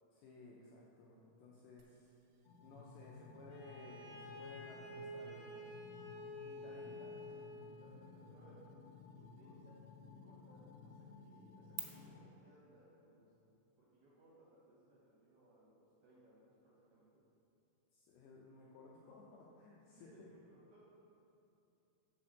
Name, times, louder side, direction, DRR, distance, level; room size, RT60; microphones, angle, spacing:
voice 1, 0.1-2.1 2.6-5.7 6.4-7.4 17.9-20.1, left 3 dB, 90° left, -4 dB, 2.2 m, -58 dB
sound 1, 1.8-11.8, right 20 dB, 90° right, 3.0 m, -59 dB
sound 2, 2.4-12.2, left 3 dB, 75° left, 2.8 m, -57 dB
Bowed string instrument, 3.5-7.7, left 1 dB, 50° left, 1.4 m, -50 dB
voice 2, 7.6-8.6 9.1-9.8 10.1-17.2 20.0-21.0, right 1 dB, 75° right, -7 dB, 1.9 m, -66 dB
6.5 x 4.3 x 6.3 m, 2.8 s
omnidirectional pair, 5.2 m